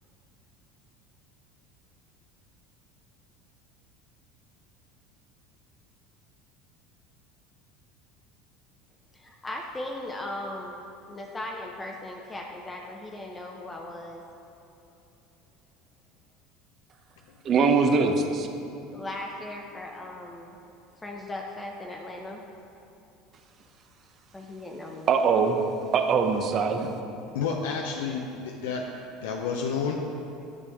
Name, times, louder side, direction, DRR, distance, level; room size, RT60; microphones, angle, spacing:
voice 1, 9.1-10.8 11.1-14.2 18.9-20.6 21.0-22.4 24.3-25.2, left 1 dB, 15° left, 0 dB, 0.7 m, -38 dB
voice 2, 17.4-18.5 25.1-25.6 25.9-27.0, right 5 dB, 45° right, 5 dB, 0.8 m, -22 dB
voice 3, 27.3-28.9 29.2-30.0, left 5 dB, 90° left, 0 dB, 0.6 m, -30 dB
10.0 x 6.8 x 3.5 m, 2.9 s
supercardioid pair, 105°, 0 cm